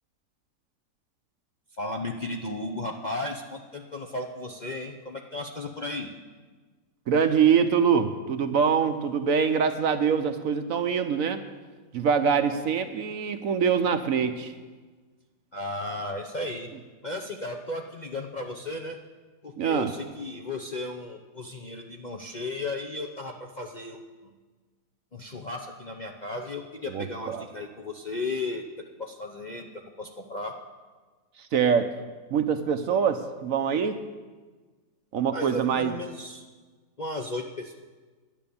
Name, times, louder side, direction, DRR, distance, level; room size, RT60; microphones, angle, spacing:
voice 1, 1.8-6.1 15.5-16.7 17.0-19.0 19.4-24.0 25.1-28.6 29.0-30.5 35.3-36.4 37.0-37.8, left 2 dB, 40° left, 2 dB, 0.6 m, -35 dB
voice 2, 7.1-11.4 11.9-14.5 19.6-19.9 26.9-27.5 31.5-31.9 32.3-34.0 35.1-35.9, right 7 dB, 65° right, 9 dB, 1.0 m, -24 dB
10.5 x 10.5 x 7.0 m, 1.4 s
omnidirectional pair, 1.7 m